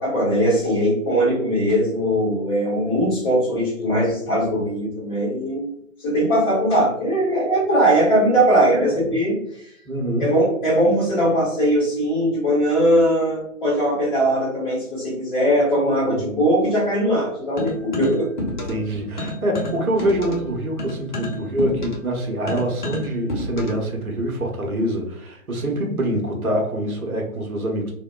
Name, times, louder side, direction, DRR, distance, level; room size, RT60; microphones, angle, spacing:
voice 1, 0.0-5.7 6.0-9.7 10.2-18.3, equal, 15° left, -10 dB, 1.1 m, -20 dB
voice 2, 8.7-9.0 9.8-10.3 16.0-16.4 18.6-27.9, right 1 dB, 85° right, 0 dB, 0.8 m, -25 dB
sound 1, 17.6-18.9 19.2-23.9, left 1 dB, 35° left, 0.5 m, -30 dB
2.8 x 2.1 x 2.2 m, 0.72 s
figure-of-eight pair, 135°, 42 cm